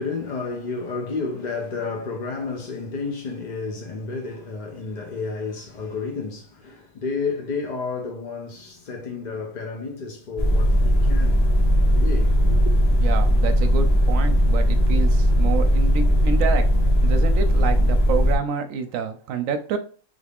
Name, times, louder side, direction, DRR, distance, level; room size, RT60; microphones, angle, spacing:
voice 1, 0.0-11.5 11.9-12.7, left 4 dB, 60° left, 0.4 m, -31 dB
sound 1, 10.4-18.4, equal, 40° left, 1.2 m, -18 dB
voice 2, 12.9-16.7 17.0-19.8, right 6 dB, 75° right, 0.9 m, -28 dB
3.5 x 2.4 x 3.4 m
omnidirectional pair, 1.4 m